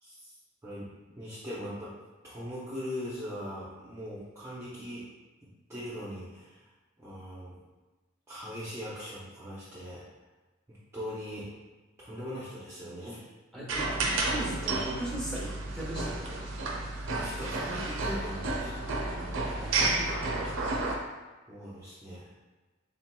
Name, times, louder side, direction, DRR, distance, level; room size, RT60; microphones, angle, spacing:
voice 1, 0.0-0.4 0.6-1.9 2.2-5.1 5.4-6.7 7.0-7.6 8.3-10.0 10.7-11.5 12.0-13.2 17.1-18.8 21.5-22.3, equal, 15° right, -9 dB, 0.6 m, -40 dB
voice 2, 13.5-16.4 18.8-20.6, right 1 dB, 5° left, -4 dB, 0.9 m, -39 dB
sound 1, 13.7-21.0, right 2 dB, 70° right, 0.6 m, -31 dB
4.4 x 3.8 x 2.2 m, 1.2 s
head